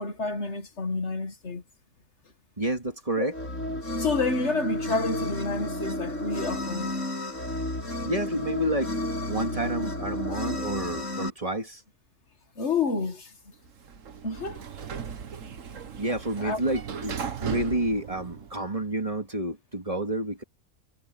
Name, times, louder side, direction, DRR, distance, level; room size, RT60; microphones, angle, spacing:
voice 1, 0.0-1.6 3.2-3.3 3.9-6.9 9.5-9.6 12.6-13.3 14.2-14.6 15.9-16.0 16.4-16.6, left 3 dB, 65° left, 2.1 m, -29 dB
voice 2, 2.6-3.3 8.0-8.9 9.3-11.8 16.0-20.4, right 1 dB, 30° right, 2.2 m, -29 dB
sound 1, 3.3-11.3, left 1 dB, 85° left, 7.2 m, -32 dB
Sliding door, 13.7-18.9, right 7 dB, 85° right, 1.6 m, -37 dB
omnidirectional pair, 1.3 m